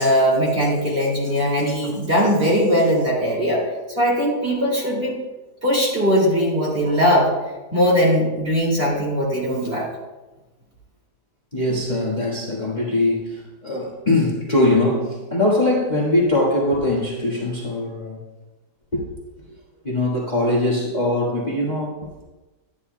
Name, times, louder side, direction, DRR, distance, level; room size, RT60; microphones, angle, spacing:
voice 1, 0.0-3.6 4.0-5.1 5.6-7.3 7.7-9.9, equal, 35° right, -4 dB, 2.8 m, -19 dB
voice 2, 11.5-18.2 18.9-19.0 19.8-21.9, left 1 dB, 25° left, -5 dB, 1.7 m, -21 dB
11.0 x 10.5 x 2.2 m, 1.1 s
omnidirectional pair, 1.8 m